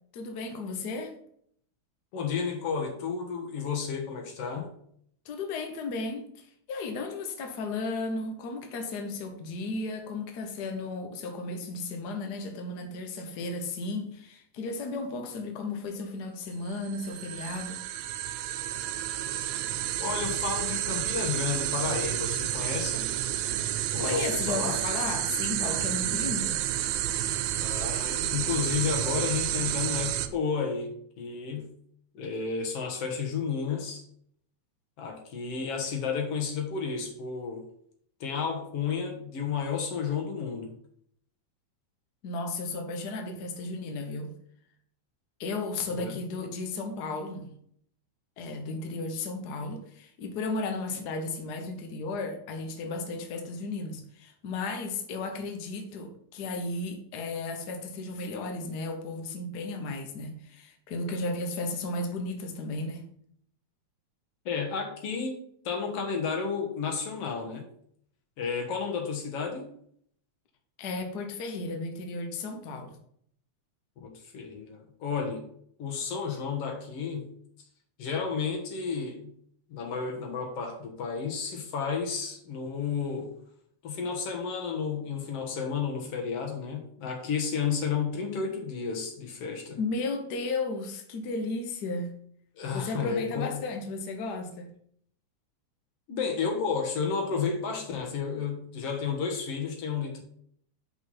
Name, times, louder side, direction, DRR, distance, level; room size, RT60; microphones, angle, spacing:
voice 1, 0.1-1.1 5.2-17.8 24.0-26.6 42.2-44.3 45.4-47.5 48.4-63.1 70.8-73.0 89.8-92.1 92.7-94.7, left 3 dB, 85° left, 4 dB, 0.8 m, -34 dB
voice 2, 2.1-4.7 20.0-23.1 23.9-24.8 27.6-31.7 32.1-34.0 35.0-37.6 38.2-40.7 46.0-46.2 64.5-65.4 65.7-67.7 68.4-69.7 74.0-75.5 75.8-77.3 78.0-79.3 79.7-83.3 83.8-89.8 92.6-93.6 96.1-100.2, left 6 dB, 55° left, 2 dB, 2.2 m, -32 dB
sound 1, 16.7-30.3, right 12 dB, 80° right, 2.0 m, -30 dB
5.8 x 5.6 x 5.6 m, 0.65 s
omnidirectional pair, 3.5 m